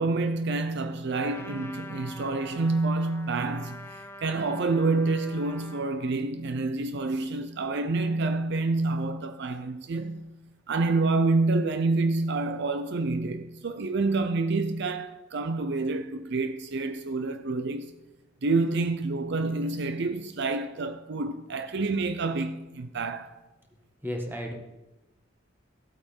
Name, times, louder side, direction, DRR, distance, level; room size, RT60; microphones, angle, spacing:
voice 1, 0.0-10.3 10.7-17.9 18.4-23.3, right 3 dB, 60° right, 0.6 m, -28 dB
Trumpet, 1.1-6.0, left 2 dB, 15° left, 0.6 m, -45 dB
voice 2, 24.0-24.5, equal, 10° right, 1.7 m, -33 dB
15.0 x 8.5 x 4.5 m
head